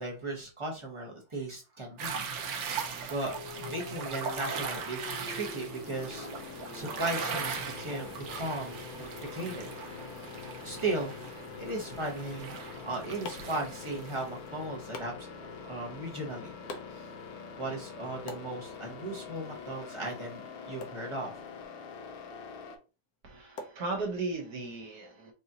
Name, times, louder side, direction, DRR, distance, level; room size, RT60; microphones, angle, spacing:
voice 1, 0.0-2.2 2.6-2.8 3.1-3.3 3.7-6.3 6.7-9.7 10.6-11.1 11.6-15.3 15.6-16.5 16.9-17.0 17.6-20.4 20.7-21.3, right 2 dB, 30° right, 0.6 m, -36 dB
sound 1, 2.0-14.2, right 5 dB, 80° right, 0.6 m, -39 dB
sound 2, 3.2-22.8, left 5 dB, 85° left, 1.5 m, -44 dB
sound 3, 12.6-24.5, left 2 dB, 65° left, 1.0 m, -51 dB
voice 2, 23.2-25.3, right 3 dB, 60° right, 1.3 m, -36 dB
4.8 x 2.6 x 2.7 m
omnidirectional pair, 2.1 m